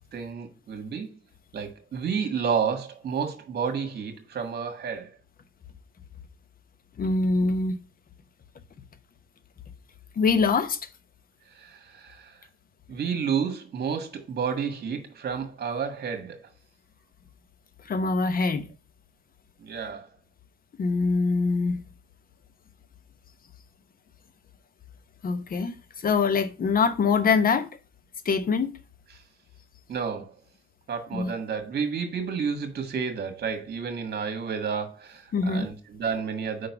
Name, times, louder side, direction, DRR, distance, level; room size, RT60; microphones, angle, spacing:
voice 1, 0.1-1.1 1.5-5.1 11.6-12.4 12.9-16.5 19.6-20.1 29.9-30.4 30.9-36.7, right 6 dB, 55° right, 1.6 m, -31 dB
voice 2, 7.0-7.8 10.2-10.8 17.9-18.6 20.8-21.9 25.2-27.7 28.2-28.7 31.1-31.3 35.3-35.7, left 4 dB, 45° left, 0.9 m, -24 dB
5.1 x 3.9 x 5.9 m
cardioid pair, 90°, 20 cm